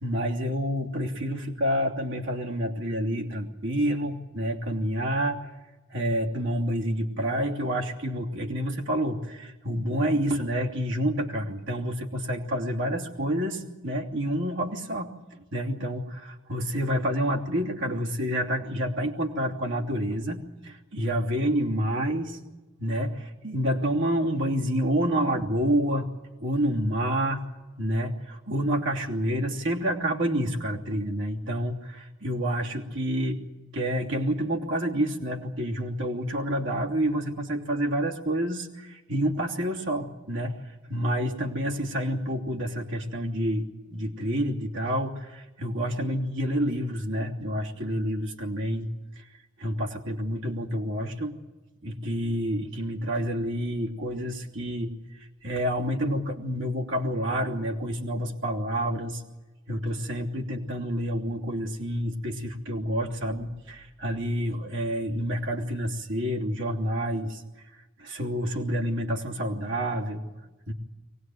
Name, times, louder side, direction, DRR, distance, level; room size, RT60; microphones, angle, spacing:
voice 1, 0.0-5.4 5.9-15.1 15.5-22.4 22.8-26.1 26.4-27.5 27.8-33.4 33.7-40.6 40.9-48.9 49.2-49.3 49.6-51.4 51.8-54.9 55.4-59.2 59.7-67.4 68.0-70.2 70.7-70.8, equal, 60° right, 0 dB, 3.0 m, -28 dB
23.5 x 19.5 x 9.3 m, 1.1 s
head